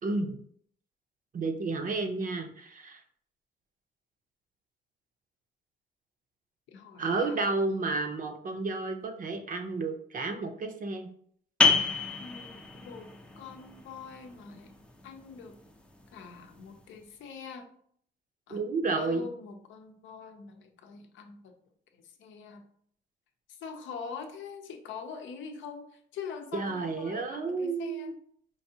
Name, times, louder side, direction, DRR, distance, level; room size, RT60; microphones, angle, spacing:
voice 1, 0.0-0.3 1.3-3.0 7.0-11.1 18.5-19.3 26.5-28.1, right 3 dB, 45° right, 6 dB, 0.6 m, -31 dB
voice 2, 6.7-7.5 12.2-14.7 15.0-15.6 16.1-17.7 18.5-18.6 19.0-21.5 21.9-22.6 23.5-28.1, left 5 dB, 75° left, 5 dB, 0.6 m, -44 dB
sound 1, 11.6-17.0, left 4 dB, 5° left, 0.5 m, -31 dB
4.6 x 2.6 x 2.7 m, 0.63 s
cardioid pair, 90°, 20 cm